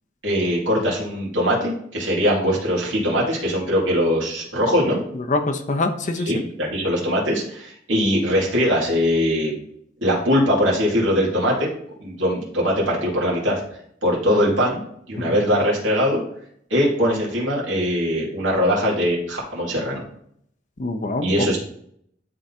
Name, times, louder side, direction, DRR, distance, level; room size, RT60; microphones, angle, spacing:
voice 1, 0.2-5.0 6.3-9.6 10.0-11.7 12.0-13.6 14.0-16.2 16.7-20.0 21.2-21.6, equal, 85° right, -4 dB, 2.4 m, -21 dB
voice 2, 5.1-6.4 15.2-15.4 20.8-21.5, left 2 dB, 40° left, 6 dB, 0.7 m, -25 dB
11.0 x 3.9 x 2.8 m, 0.69 s
head